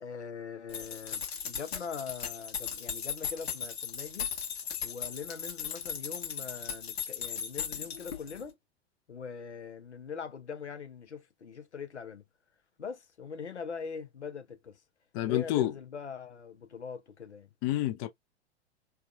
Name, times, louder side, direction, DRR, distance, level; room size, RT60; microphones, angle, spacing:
voice 1, 0.0-4.3 4.8-8.6 9.1-12.2 12.8-14.8 15.2-17.5, left 6 dB, 85° left, 0.7 m, -42 dB
sound 1, 0.7-8.4, left 7 dB, 70° left, 1.1 m, -37 dB
voice 2, 15.1-15.7 17.6-18.1, left 14 dB, 30° left, 0.4 m, -28 dB
3.4 x 2.2 x 2.3 m
figure-of-eight pair, 95°, 33 cm